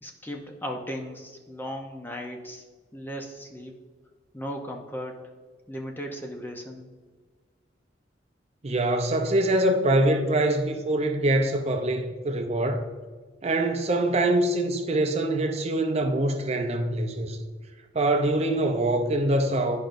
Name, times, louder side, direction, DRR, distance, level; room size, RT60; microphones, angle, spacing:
voice 1, 0.0-2.6 2.9-3.7 4.3-5.3 5.7-6.9, equal, 10° left, 0.6 m, -36 dB
voice 2, 8.6-12.8 13.4-17.4 17.9-19.8, right 1 dB, 35° right, 0.5 m, -24 dB
10.5 x 5.1 x 2.6 m
head